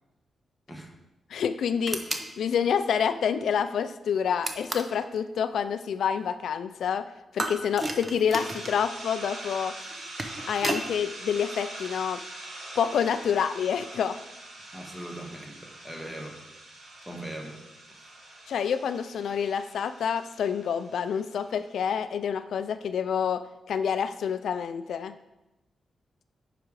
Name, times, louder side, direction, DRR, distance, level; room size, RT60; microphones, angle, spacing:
voice 1, 0.7-1.0 14.7-16.4 17.1-18.1, right 1 dB, 5° right, 3 dB, 1.2 m, -41 dB
voice 2, 1.3-7.1 7.3-9.7 10.5-12.2 12.8-14.2 18.5-23.4 23.7-25.1, left 7 dB, 75° left, 10 dB, 0.4 m, -28 dB
sound 1, 1.9-2.3 4.4-5.0 7.4-8.8 9.9-10.9, right 2 dB, 25° right, 0.7 m, -32 dB
sound 2, 8.3-21.6, right 1 dB, 80° right, 2.8 m, -43 dB
10.5 x 5.0 x 4.7 m, 0.97 s
wide cardioid pair, 140°, 0 cm